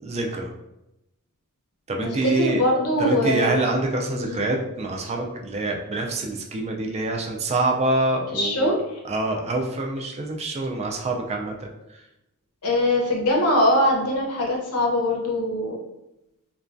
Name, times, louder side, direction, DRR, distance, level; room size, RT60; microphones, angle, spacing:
voice 1, 0.0-0.5 1.9-2.6 3.0-8.8 9.0-12.0, right 2 dB, 30° right, 1 dB, 0.3 m, -26 dB
voice 2, 2.0-3.7 4.1-4.4 8.3-8.8 12.6-15.8, left 1 dB, 85° left, -1 dB, 0.7 m, -22 dB
2.3 x 2.2 x 2.5 m, 0.89 s
head